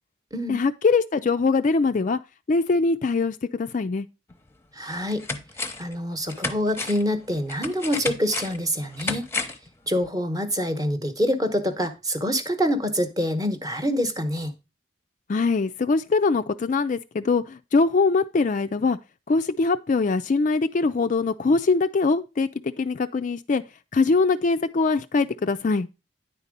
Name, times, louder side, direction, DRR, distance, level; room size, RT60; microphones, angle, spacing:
voice 1, 0.5-2.2 2.5-4.1 15.3-19.0 19.3-23.6 23.9-25.9, left 4 dB, 40° left, 0.4 m, -22 dB
sound 1, 4.3-4.4 4.8-5.9 6.3-9.7 10.0-10.1, left 3 dB, 15° left, 0.8 m, -32 dB
voice 2, 4.8-5.3 5.8-9.2 9.9-14.5, equal, 20° right, 1.0 m, -26 dB
9.7 x 4.2 x 5.1 m
head